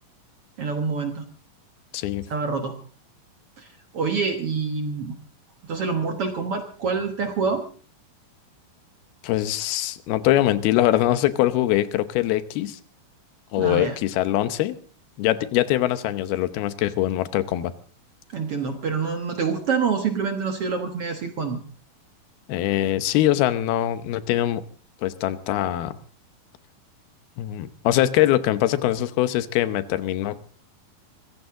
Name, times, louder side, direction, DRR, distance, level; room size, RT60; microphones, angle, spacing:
voice 1, 0.6-1.3 2.3-2.8 3.6-5.2 5.6-7.7 13.6-14.0 18.3-21.6, right 5 dB, 55° right, 6 dB, 1.7 m, -26 dB
voice 2, 1.9-2.3 9.2-12.8 13.5-14.8 15.2-17.7 22.5-24.6 25.0-26.0 27.4-30.4, left 14 dB, 85° left, 13 dB, 2.9 m, -23 dB
24.0 x 15.5 x 3.8 m, 0.39 s
omnidirectional pair, 4.3 m